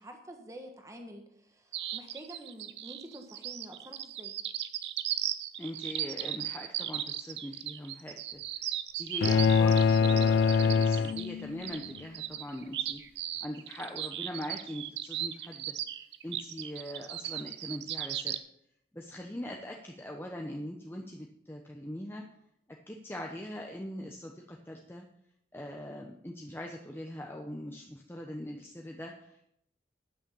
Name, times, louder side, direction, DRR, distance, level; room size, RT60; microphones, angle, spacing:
voice 1, 0.0-4.4, right 1 dB, 20° right, 4 dB, 1.3 m, -48 dB
sound 1, 1.7-18.4, right 12 dB, 80° right, 0.7 m, -36 dB
voice 2, 5.6-15.7 16.2-18.4 18.9-22.2 22.9-25.0 25.5-29.4, equal, 15° left, 1 dB, 0.8 m, -42 dB
sound 2, 9.2-11.8, left 5 dB, 80° left, 0.3 m, -24 dB
11.0 x 6.4 x 6.9 m, 0.75 s
head